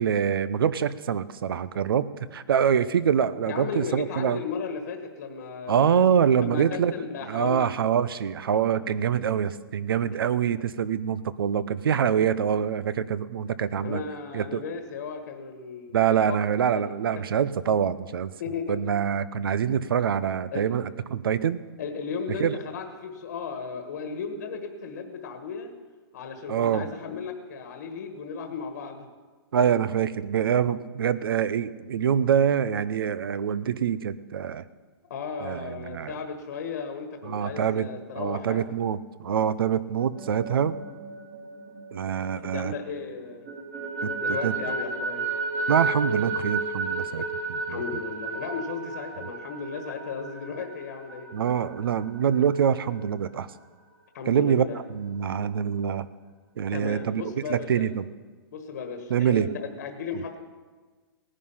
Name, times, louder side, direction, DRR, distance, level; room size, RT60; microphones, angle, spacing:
voice 1, 0.0-4.4 5.7-6.9 7.3-14.0 14.3-14.6 15.9-18.3 18.7-21.6 22.4-22.6 26.5-26.9 29.5-34.6 35.4-36.1 37.2-37.9 38.2-40.8 41.9-42.7 44.0-44.1 44.4-44.5 45.7-47.8 51.3-53.5 54.3-56.1 56.6-57.2 57.5-58.1 59.1-59.5, right 8 dB, 60° right, 16 dB, 0.7 m, -25 dB
voice 2, 3.5-6.0 6.4-7.8 13.8-16.2 16.7-16.9 18.4-18.8 20.5-20.6 21.8-25.7 26.1-29.0 35.1-38.6 42.4-43.5 44.1-45.2 47.7-51.3 54.1-54.8 56.7-57.9 58.5-60.4, left 5 dB, 40° left, 5 dB, 1.5 m, -35 dB
sound 1, 40.0-42.8 43.2-52.6, right 3 dB, 30° right, 2.7 m, -33 dB
17.5 x 10.0 x 5.7 m, 1.4 s
hypercardioid pair, 175°, 13 cm